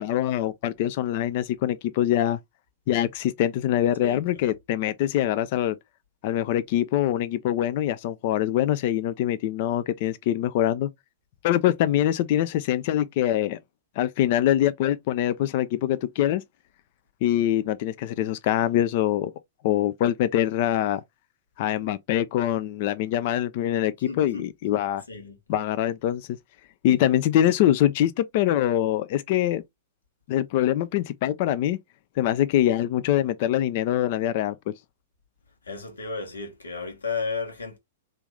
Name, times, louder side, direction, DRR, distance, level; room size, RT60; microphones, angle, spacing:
voice 1, 0.0-2.4 2.9-5.8 6.2-10.9 11.4-13.6 14.0-16.4 17.2-19.3 19.6-21.0 21.6-25.0 25.5-26.3 26.8-29.6 30.3-31.8 32.2-34.5, left 12 dB, 55° left, 0.4 m, -24 dB
voice 2, 4.0-4.5 24.0-24.5 24.7-24.8 25.1-25.4 35.6-37.8, left 4 dB, 90° left, 1.2 m, -34 dB
3.4 x 2.5 x 3.1 m
hypercardioid pair, 110°, 0 cm